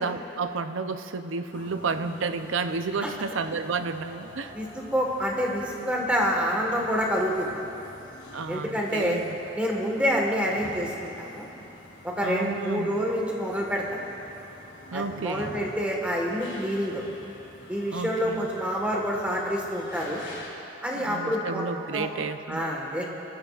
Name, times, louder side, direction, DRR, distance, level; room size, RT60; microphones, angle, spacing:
voice 1, 0.0-4.5 8.3-9.4 12.2-13.0 14.9-15.5 17.9-18.5 20.9-22.7, right 4 dB, 90° right, 9 dB, 0.6 m, -31 dB
sound 1, 1.5-20.5, left 1 dB, 75° left, 2.8 m, -47 dB
voice 2, 4.9-7.6 8.5-9.2 9.6-11.4 12.0-14.0 14.9-17.0 17.7-20.2 20.8-21.6 21.9-22.1 22.5-23.1, equal, 5° right, -1 dB, 1.5 m, -27 dB
23.5 x 13.5 x 2.4 m, 2.9 s
head